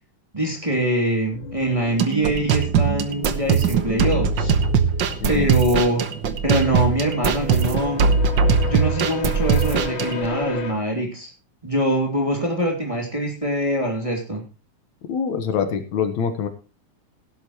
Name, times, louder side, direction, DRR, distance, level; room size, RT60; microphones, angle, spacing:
voice 1, 0.3-4.5 5.3-6.0 6.4-8.1 8.6-11.3 11.6-14.4, right 1 dB, 10° right, 0 dB, 2.6 m, -23 dB
sound 1, 1.3-10.7, left 5 dB, 50° left, 2.1 m, -34 dB
sound 2, 2.0-10.3, right 6 dB, 80° right, 1.0 m, -21 dB
voice 2, 15.1-16.5, left 7 dB, 75° left, 8 dB, 2.5 m, -24 dB
16.5 x 12.0 x 3.0 m, 0.30 s
omnidirectional pair, 3.4 m